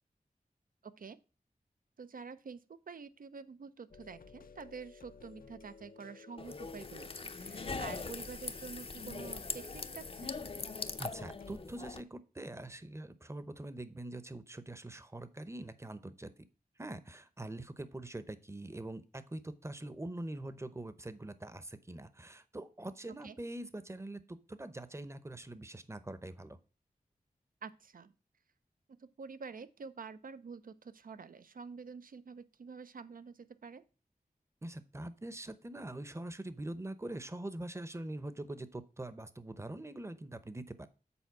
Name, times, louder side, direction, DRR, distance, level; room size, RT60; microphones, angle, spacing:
voice 1, 0.8-1.2 2.0-10.4 23.2-23.4 27.6-28.1 29.0-33.8, right 5 dB, 75° right, 13 dB, 0.6 m, -48 dB
sound 1, 3.9-11.5, left 5 dB, 75° left, 0.6 m, -55 dB
sound 2, 6.4-12.0, left 4 dB, 40° left, 0.6 m, -41 dB
voice 2, 11.0-16.3 16.8-26.6 34.6-40.9, right 1 dB, 20° right, 13 dB, 0.8 m, -44 dB
7.1 x 4.4 x 6.0 m, 0.35 s
wide cardioid pair, 65°, 15 cm